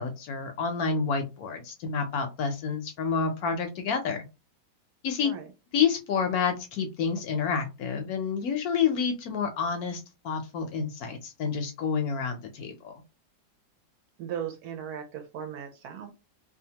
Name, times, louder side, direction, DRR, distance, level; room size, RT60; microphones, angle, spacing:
voice 1, 0.0-4.2 5.0-5.3 5.7-13.0, left 6 dB, 70° left, 6 dB, 0.9 m, -29 dB
voice 2, 14.2-16.2, right 8 dB, 70° right, 6 dB, 1.0 m, -37 dB
2.7 x 2.3 x 2.8 m, 0.27 s
omnidirectional pair, 1.9 m